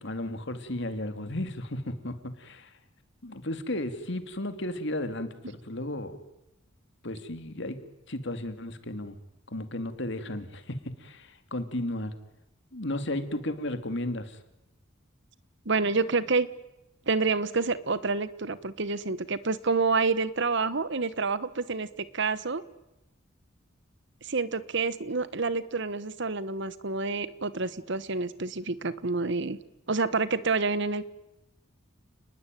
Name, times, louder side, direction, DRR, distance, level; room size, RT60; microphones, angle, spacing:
voice 1, 0.0-2.7 3.2-6.2 7.0-7.8 8.1-9.2 9.5-12.1 12.7-14.4, left 1 dB, 60° left, 9 dB, 2.6 m, -34 dB
voice 2, 15.6-16.5 17.1-21.9 22.1-22.6 24.2-29.6 29.9-31.1, right 4 dB, 60° right, 16 dB, 1.3 m, -28 dB
30.0 x 20.5 x 9.2 m, 0.94 s
head